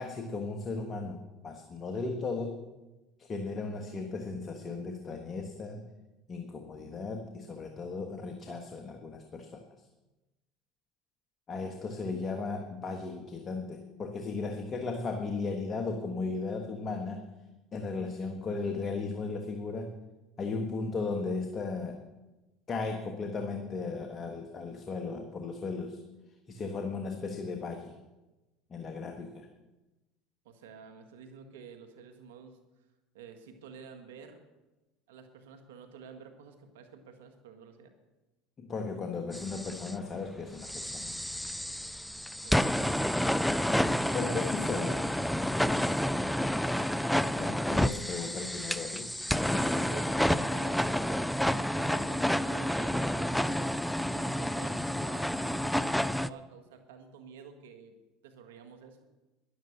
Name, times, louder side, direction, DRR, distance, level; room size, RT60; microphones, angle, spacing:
voice 1, 0.0-2.6 3.2-5.9 6.3-9.6 11.5-17.2 17.7-20.0 20.4-22.0 22.7-26.0 26.5-27.9 28.7-29.5 38.6-41.1 44.1-45.0 47.3-49.1, left 4 dB, 35° left, 4 dB, 1.5 m, -36 dB
voice 2, 30.4-32.6 33.1-34.5 35.1-38.0 42.4-43.2 44.1-45.0 45.7-45.9 46.3-46.6 49.5-53.8 54.1-57.9 58.2-59.0, right 6 dB, 85° right, 7 dB, 1.6 m, -50 dB
sound 1, 39.3-39.9 40.6-56.3, equal, ahead, 0.4 m, -30 dB
12.0 x 11.0 x 6.7 m, 1.1 s
hypercardioid pair, 90°, 0 cm